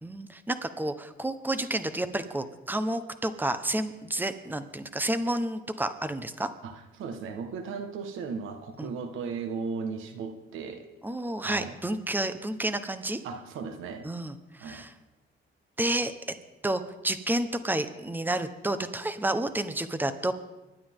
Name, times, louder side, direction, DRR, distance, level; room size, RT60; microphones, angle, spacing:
voice 1, 0.0-6.5 8.8-8.9 11.0-13.2 14.0-14.9 15.8-16.1 16.6-20.3, right 1 dB, 10° right, 10 dB, 1.1 m, -30 dB
voice 2, 6.6-10.9 11.4-11.8 13.2-14.1 14.6-14.9, right 5 dB, 85° right, 7 dB, 1.6 m, -36 dB
25.5 x 12.0 x 3.7 m, 1.1 s
cardioid pair, 90°, 20 cm